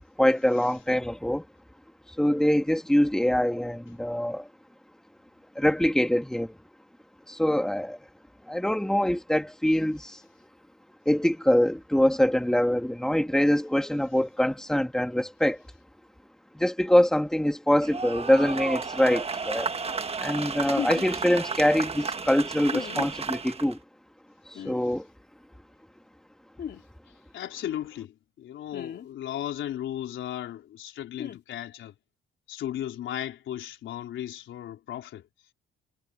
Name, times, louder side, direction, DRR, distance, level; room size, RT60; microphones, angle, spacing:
voice 1, 0.2-1.4 2.2-4.5 5.6-6.5 7.3-8.0 8.5-10.2 11.1-15.6 16.5-19.7 20.2-23.8 24.5-25.1, left 1 dB, 5° left, 2.5 m, -24 dB
sound 1, 17.8-23.7, right 4 dB, 30° right, 1.5 m, -33 dB
sound 2, 20.8-21.1 22.7-23.1 24.5-24.8 26.6-26.8 28.7-29.1 31.2-31.4, left 8 dB, 55° left, 2.9 m, -35 dB
voice 2, 27.3-31.9 32.5-35.2, left 11 dB, 75° left, 4.0 m, -35 dB
cardioid pair, 90°, 20 cm